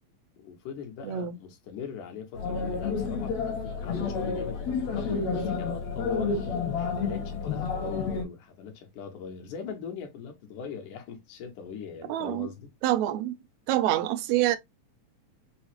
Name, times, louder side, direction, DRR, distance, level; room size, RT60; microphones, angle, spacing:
voice 1, 0.4-3.4 3.8-12.7, left 6 dB, 80° left, 2.5 m, -41 dB
voice 2, 1.0-1.4 12.1-12.5 12.8-13.3 13.7-14.6, right 13 dB, 80° right, 1.6 m, -26 dB
sound 1, 2.4-8.2, left 5 dB, 65° left, 2.1 m, -30 dB
5.3 x 2.0 x 2.9 m
omnidirectional pair, 3.6 m